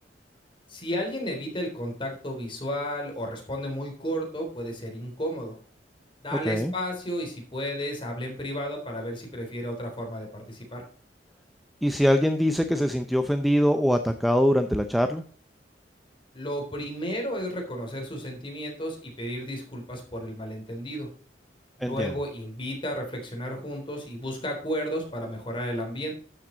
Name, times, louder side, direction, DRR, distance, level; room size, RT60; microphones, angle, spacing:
voice 1, 0.7-5.6 6.2-10.8 16.3-21.1 21.8-26.1, equal, 30° left, 2 dB, 3.5 m, -33 dB
voice 2, 11.8-15.2 21.8-22.1, equal, ahead, 7 dB, 0.6 m, -23 dB
12.5 x 7.6 x 3.9 m, 0.43 s
head